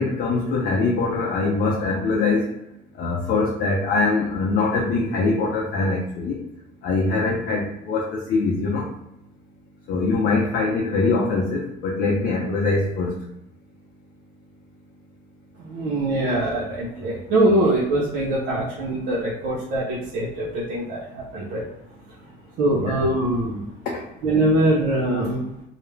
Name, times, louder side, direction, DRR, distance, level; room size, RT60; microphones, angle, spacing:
voice 1, 0.0-2.5 3.0-6.4 6.8-8.9 9.9-13.1 22.8-23.0 23.9-24.0, left 3 dB, 75° left, -3 dB, 0.6 m, -23 dB
voice 2, 15.6-21.7 22.6-23.6 24.2-25.4, right 1 dB, 85° right, -5 dB, 0.6 m, -23 dB
2.4 x 2.0 x 3.1 m, 0.84 s
cardioid pair, 110°, 17 cm